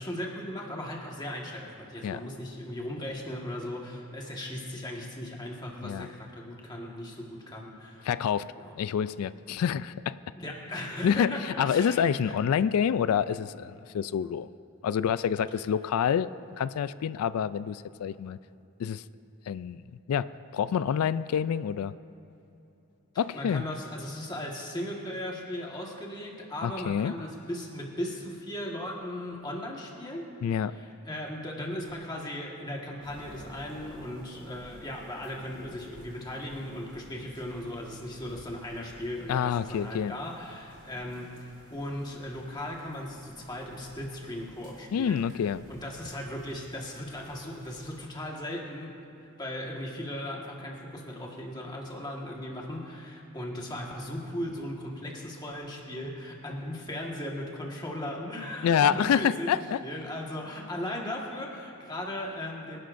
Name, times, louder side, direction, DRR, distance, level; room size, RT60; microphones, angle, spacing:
voice 1, 0.0-8.1 8.6-8.7 9.0-9.1 10.3-12.4 15.5-15.6 23.1-30.3 30.6-45.3 45.7-48.9 49.4-62.8, left 1 dB, 20° left, -1 dB, 1.5 m, -37 dB
voice 2, 8.0-8.5 8.8-10.2 11.0-14.5 14.8-16.3 16.6-18.4 18.8-19.0 19.5-19.8 20.1-21.9 23.2-23.6 26.6-27.1 30.4-30.8 39.3-40.1 44.9-45.6 58.6-59.8, left 8 dB, 85° left, 16 dB, 0.3 m, -27 dB
sound 1, 33.0-48.0, equal, 20° right, 2.6 m, -52 dB
24.5 x 11.5 x 2.6 m, 2.9 s
head